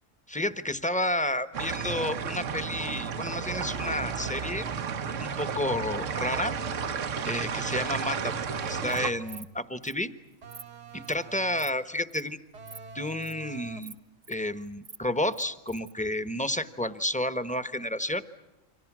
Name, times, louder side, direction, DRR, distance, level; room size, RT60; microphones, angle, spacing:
voice 1, 0.3-4.7 5.2-6.6 7.2-8.3 8.6-10.1 10.9-12.4 12.9-13.9 14.3-18.2, left 1 dB, 5° left, 11 dB, 1.1 m, -31 dB
sound 1, 1.5-9.1, right 6 dB, 80° right, 1.5 m, -32 dB
sound 2, 3.4-4.9 5.7-7.2 8.1-9.6 10.4-11.9 12.5-14.0, right 3 dB, 60° right, 1.4 m, -44 dB
Insect, 8.7-9.0 9.3-9.5 9.8-9.9 10.3-10.6 11.0-11.2 11.6-11.8 12.1-12.3 12.7-12.8 13.1-13.3 13.8-14.3 14.7-15.9, right 4 dB, 30° right, 1.0 m, -47 dB
30.0 x 25.5 x 6.2 m, 0.99 s
omnidirectional pair, 1.3 m